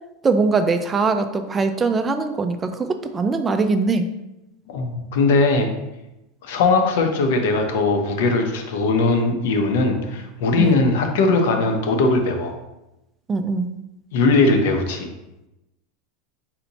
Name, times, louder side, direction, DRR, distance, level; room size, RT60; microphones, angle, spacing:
voice 1, 0.2-4.1 10.6-10.8 13.3-13.7, right 4 dB, 20° right, 8 dB, 0.3 m, -21 dB
voice 2, 4.7-5.7 6.4-12.5 14.1-15.1, left 3 dB, 75° left, 5 dB, 0.7 m, -19 dB
4.2 x 2.7 x 4.0 m, 0.93 s
supercardioid pair, 130°, 0 cm